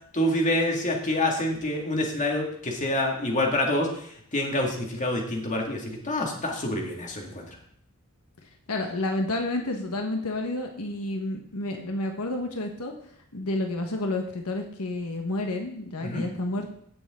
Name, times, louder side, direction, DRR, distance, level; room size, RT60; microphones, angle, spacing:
voice 1, 0.1-7.6 16.0-16.2, left 1 dB, 35° left, 1 dB, 2.1 m, -27 dB
voice 2, 8.7-12.9 13.3-16.7, left 2 dB, 85° left, 3 dB, 1.3 m, -30 dB
15.5 x 7.1 x 3.8 m, 0.66 s
head